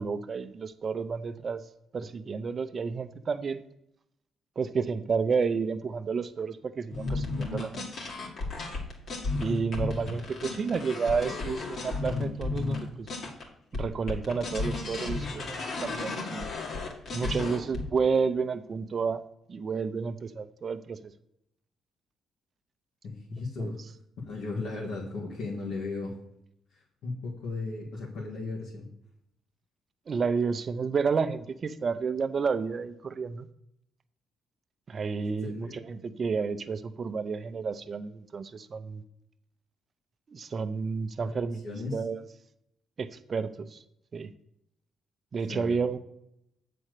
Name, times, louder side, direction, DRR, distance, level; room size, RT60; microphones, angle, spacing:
voice 1, 0.0-1.7 1.9-3.6 4.6-7.9 9.4-13.1 13.7-16.5 17.1-19.2 19.5-21.1 23.6-23.8 30.1-33.5 34.9-39.0 40.3-42.2 43.0-43.8 44.1-44.3 45.3-46.0, right 5 dB, 45° right, 11 dB, 0.6 m, -31 dB
sound 1, 6.9-13.4 13.7-17.8, left 3 dB, 60° left, 2.1 m, -33 dB
voice 2, 23.0-23.8 24.3-26.1 26.7-28.9 35.4-35.8 41.6-42.0 45.5-45.8, left 3 dB, 80° left, -4 dB, 1.7 m, -36 dB
7.8 x 4.3 x 6.6 m, 0.77 s
cardioid pair, 90°, 0 cm